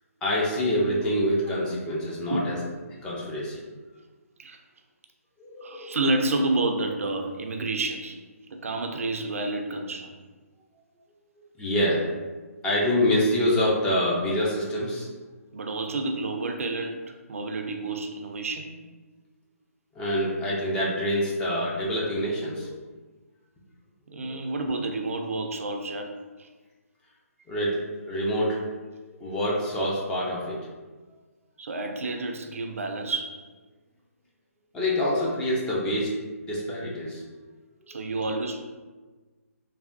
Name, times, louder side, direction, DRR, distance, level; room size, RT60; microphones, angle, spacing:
voice 1, 0.2-2.6 3.0-3.6 5.4-6.0 11.6-12.0 12.6-15.1 19.9-22.7 24.1-24.3 27.5-28.6 29.1-30.6 34.7-37.2 38.3-38.4, left 1 dB, 10° left, -5 dB, 0.4 m, -26 dB
voice 2, 2.3-2.6 4.4-4.6 5.6-8.2 8.5-10.1 15.5-17.0 17.3-18.7 24.1-26.1 26.4-26.5 31.6-33.4 37.9-38.6, right 2 dB, 60° right, 4 dB, 0.4 m, -29 dB
3.3 x 2.2 x 2.5 m, 1.3 s
figure-of-eight pair, 140°, 8 cm